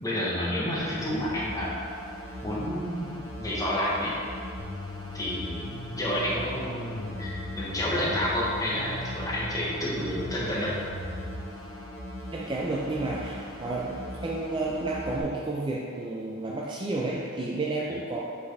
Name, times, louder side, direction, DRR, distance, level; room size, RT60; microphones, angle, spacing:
voice 1, 0.0-1.8 2.4-4.1 5.1-10.7, left 1 dB, 15° left, -6 dB, 1.0 m, -30 dB
sound 1, 0.8-15.2, left 1 dB, 35° left, 1.2 m, -40 dB
sound 2, 4.6-11.4, left 1 dB, 85° left, 0.6 m, -39 dB
voice 2, 12.3-18.2, right 2 dB, 20° right, -3 dB, 0.4 m, -31 dB
7.5 x 4.1 x 3.3 m, 2.3 s
head